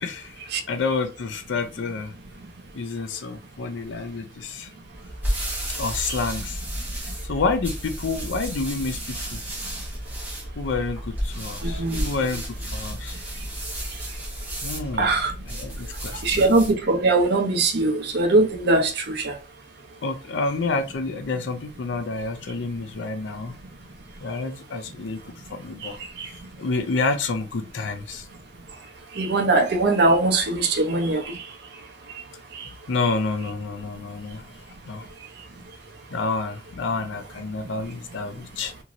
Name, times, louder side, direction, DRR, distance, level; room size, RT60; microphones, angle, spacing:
voice 1, 0.0-0.4 0.7-2.1 2.7-4.7 5.7-6.6 7.3-9.4 10.6-13.2 14.6-15.2 15.5-16.4 20.0-23.5 24.2-25.2 25.5-26.0 26.6-28.3 32.9-34.5 34.9-35.1 36.1-38.7, left 3 dB, 90° left, 0.5 m, -29 dB
sound 1, 4.9-16.8, equal, 10° right, 1.1 m, -32 dB
voice 2, 11.6-12.0 15.0-15.3 16.2-19.4 25.8-25.9 26.2-26.3 29.2-31.4 32.5-32.6, right 2 dB, 60° right, 0.6 m, -21 dB
2.9 x 2.7 x 2.5 m
head